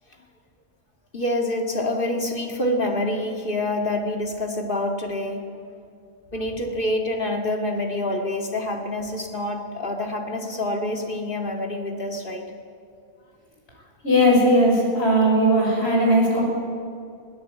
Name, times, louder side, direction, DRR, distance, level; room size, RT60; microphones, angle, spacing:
voice 1, 1.1-5.5 6.3-12.5, left 1 dB, 55° left, 2 dB, 2.5 m, -26 dB
voice 2, 14.0-16.4, equal, 80° left, -2 dB, 6.5 m, -18 dB
23.0 x 17.0 x 8.4 m, 2.4 s
omnidirectional pair, 1.1 m